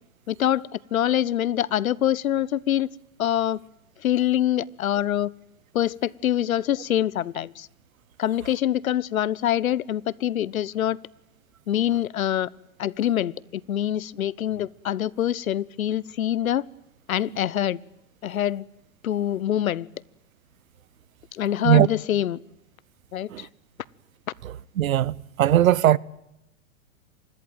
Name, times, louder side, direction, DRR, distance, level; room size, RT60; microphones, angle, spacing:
voice 1, 0.3-2.9 3.2-3.6 4.0-5.3 5.7-7.7 8.2-11.0 11.7-12.5 12.8-16.6 17.1-17.8 18.2-18.6 19.0-19.9 21.3-22.4 23.1-23.5, left 11 dB, 90° left, 1.0 m, -25 dB
voice 2, 24.4-26.0, right 12 dB, 85° right, 1.0 m, -20 dB
26.5 x 20.5 x 9.1 m
hypercardioid pair, 130°, 40 cm